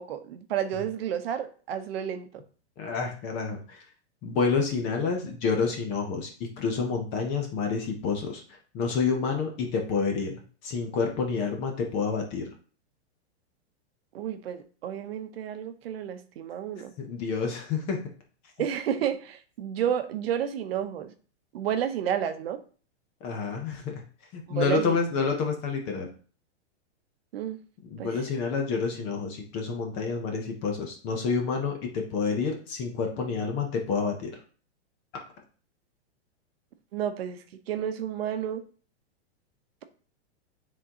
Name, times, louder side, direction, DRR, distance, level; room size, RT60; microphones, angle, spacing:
voice 1, 0.0-2.3 14.1-16.9 18.6-21.1 21.5-22.6 24.5-25.0 27.3-27.6 28.0-28.2 36.9-37.4 37.7-38.6, right 9 dB, 60° right, 9 dB, 0.8 m, -31 dB
voice 2, 2.8-3.8 4.2-8.4 8.7-12.5 17.0-18.0 23.2-24.0 24.3-26.1 27.9-34.3, left 5 dB, 20° left, 3 dB, 0.5 m, -29 dB
9.3 x 3.8 x 2.8 m, 0.41 s
supercardioid pair, 165°, 34 cm